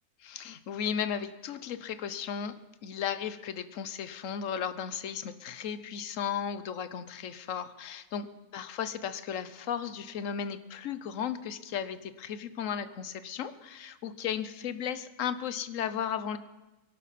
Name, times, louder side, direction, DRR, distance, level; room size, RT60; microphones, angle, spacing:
voice 1, 0.2-16.4, left 8 dB, 65° left, 12 dB, 1.1 m, -35 dB
22.5 x 11.5 x 4.2 m, 1.1 s
omnidirectional pair, 1.6 m